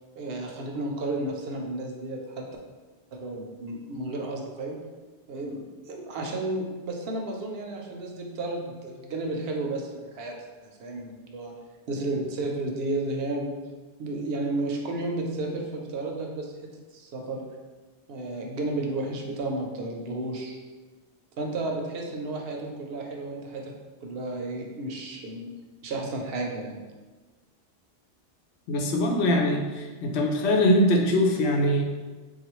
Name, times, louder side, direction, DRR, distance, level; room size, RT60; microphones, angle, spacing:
voice 1, 0.2-2.5 3.1-4.8 5.3-10.4 10.8-11.5 11.9-13.6 14.0-17.5 18.1-20.6 21.4-23.7 24.0-25.6 25.8-26.8, right 2 dB, 65° right, 1 dB, 0.8 m, -32 dB
voice 2, 28.7-31.9, left 1 dB, 75° left, 1 dB, 0.8 m, -22 dB
3.8 x 2.4 x 3.0 m, 1.3 s
omnidirectional pair, 1.2 m